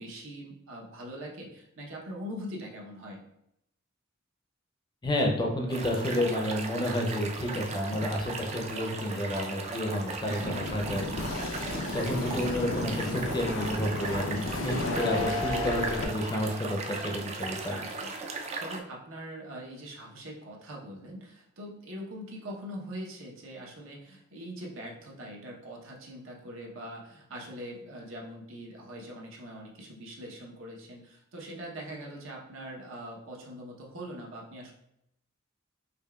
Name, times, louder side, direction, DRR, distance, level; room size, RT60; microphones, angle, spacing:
voice 1, 0.0-3.2 10.3-10.6 17.7-34.7, equal, 75° right, -1 dB, 0.8 m, -42 dB
voice 2, 5.0-11.3 11.9-17.8, left 1 dB, 20° left, 1 dB, 0.5 m, -30 dB
sound 1, 5.7-18.8, right 3 dB, 30° right, 0.3 m, -37 dB
sound 2, 10.4-16.0, left 2 dB, 80° left, 0.5 m, -33 dB
5.1 x 2.3 x 2.2 m, 0.79 s
head